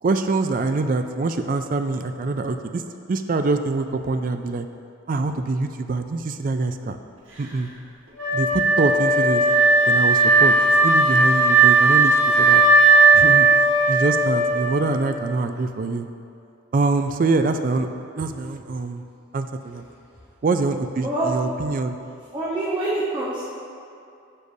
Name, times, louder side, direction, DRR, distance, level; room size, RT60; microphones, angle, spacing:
voice 1, 0.0-2.8 3.1-4.7 5.1-7.0 7.4-7.7 8.3-9.4 9.9-10.5 10.8-12.6 13.1-13.5 13.9-16.1 16.7-17.9 18.2-19.0 19.3-19.8 20.4-22.0, right 3 dB, 45° right, 8 dB, 0.3 m, -24 dB
Wind instrument woodwind instrument, 8.2-15.2, right 3 dB, 75° right, 1.6 m, -17 dB
voice 2, 21.0-21.3 22.3-23.4, right 2 dB, 20° right, -8 dB, 0.9 m, -25 dB
9.9 x 6.5 x 2.7 m, 2.5 s
head